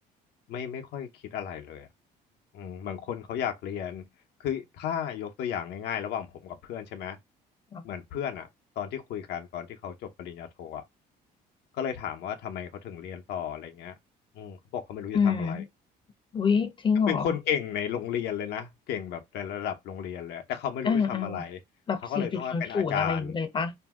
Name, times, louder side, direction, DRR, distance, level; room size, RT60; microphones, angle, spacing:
voice 1, 0.5-1.9 2.5-4.1 4.4-7.2 7.8-8.5 8.8-10.8 11.7-13.9 14.3-15.6 17.1-21.6 22.0-23.3, left 9 dB, 75° left, 0.7 m, -34 dB
voice 2, 15.1-15.6 16.3-17.3 20.8-21.4 21.9-23.7, left 6 dB, 30° left, 0.6 m, -27 dB
2.6 x 2.0 x 3.5 m
cardioid pair, 110°, 17 cm